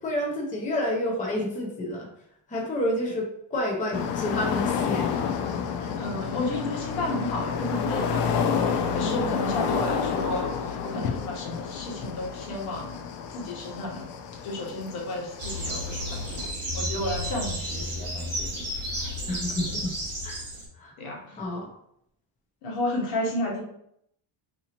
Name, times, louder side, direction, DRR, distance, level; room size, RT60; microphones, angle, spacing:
voice 1, 0.0-2.1 2.5-5.1 5.8-5.9 9.0-9.3 19.3-19.9 20.2-20.4 20.7-20.9 21.4-21.7, left 1 dB, 15° left, -2 dB, 0.7 m, -29 dB
sound 1, 3.9-16.5, left 6 dB, 60° left, 0.5 m, -30 dB
voice 2, 5.9-13.0 13.3-14.1 14.4-18.7 18.9-19.1 21.0-21.4 22.6-23.6, left 2 dB, 75° left, -1 dB, 1.3 m, -32 dB
sound 2, 15.4-20.7, equal, 30° right, 1.4 m, -32 dB
3.8 x 2.9 x 2.9 m, 0.72 s
cardioid pair, 140°, 49 cm